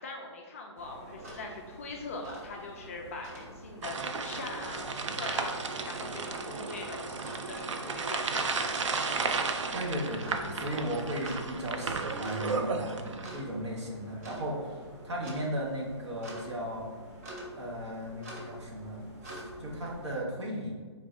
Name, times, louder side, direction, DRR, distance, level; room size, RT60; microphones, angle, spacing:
voice 1, 0.0-5.5 5.9-8.7, left 3 dB, 30° left, 0 dB, 0.4 m, -42 dB
sound 1, 0.8-20.2, right 1 dB, 30° right, 0.8 m, -46 dB
sound 2, 3.8-13.4, right 4 dB, 85° right, 0.5 m, -34 dB
voice 2, 9.4-14.5 15.0-16.9 17.5-20.7, equal, 70° right, -3 dB, 1.3 m, -36 dB
3.8 x 2.5 x 4.2 m, 1.5 s
hypercardioid pair, 160°, 15 cm